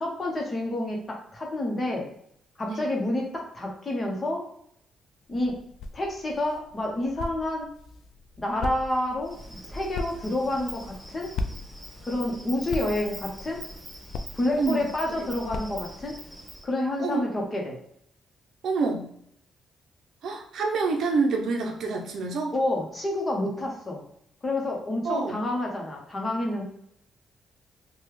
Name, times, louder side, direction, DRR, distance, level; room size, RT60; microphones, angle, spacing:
voice 1, 0.0-2.1 2.6-4.4 5.3-5.6 5.9-7.7 8.4-11.3 12.0-13.6 14.3-16.2 16.6-17.8 22.5-24.0 24.4-26.6, left 1 dB, 30° left, 0 dB, 1.0 m, -29 dB
sound 1, 5.2-16.2, left 3 dB, 75° left, 0.3 m, -39 dB
Insect, 9.2-16.6, right 1 dB, ahead, 1.2 m, -43 dB
voice 2, 18.6-19.1 20.2-22.5 25.0-25.4, right 4 dB, 70° right, 2 dB, 0.6 m, -27 dB
3.1 x 2.3 x 3.2 m, 0.71 s
cardioid pair, 90°, 0 cm